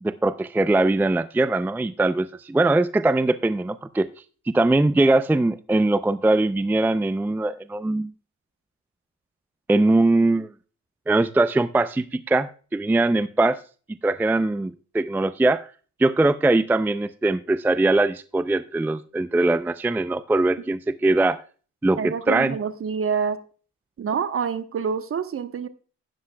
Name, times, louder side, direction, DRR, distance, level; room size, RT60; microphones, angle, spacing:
voice 1, 0.0-4.1 4.5-8.1 9.7-10.5 11.1-13.6 14.0-15.7 16.0-21.4 21.8-22.6, right 2 dB, 5° right, 14 dB, 0.4 m, -21 dB
voice 2, 22.0-23.4 24.0-25.7, right 6 dB, 45° right, 11 dB, 1.0 m, -27 dB
12.5 x 9.5 x 2.2 m, 0.38 s
cardioid pair, 90°, 30 cm